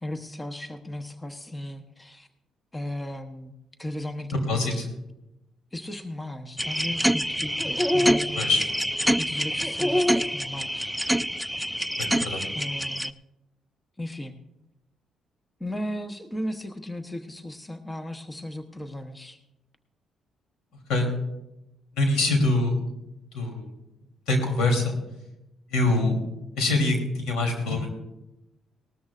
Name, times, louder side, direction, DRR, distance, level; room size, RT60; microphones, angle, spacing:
voice 1, 0.0-2.3 2.7-3.5 3.8-4.9 5.7-8.7 9.2-10.9 12.5-13.1 14.0-14.4 15.6-19.4, left 1 dB, 15° left, 7 dB, 0.9 m, -36 dB
voice 2, 4.5-4.8 8.3-8.6 12.0-12.4 20.9-21.1 22.0-22.8 23.3-23.6 24.3-24.9 25.7-26.2 26.6-27.9, left 2 dB, 85° left, 2 dB, 3.2 m, -24 dB
sound 1, 6.6-13.1, equal, ahead, 0.3 m, -25 dB
19.0 x 13.0 x 2.5 m, 0.92 s
cardioid pair, 90°, 0 cm